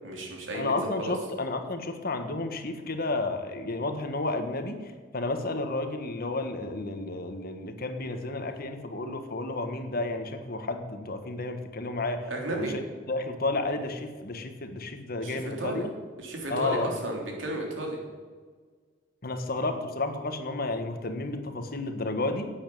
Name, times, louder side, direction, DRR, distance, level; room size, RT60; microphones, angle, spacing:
voice 1, 0.0-1.1 12.3-12.7 15.2-15.9 16.2-18.0, right 1 dB, 85° right, 0 dB, 3.5 m, -33 dB
voice 2, 0.5-15.9 16.5-16.9 19.2-22.5, left 2 dB, 50° left, 7 dB, 1.5 m, -32 dB
11.5 x 8.9 x 9.0 m, 1.5 s
head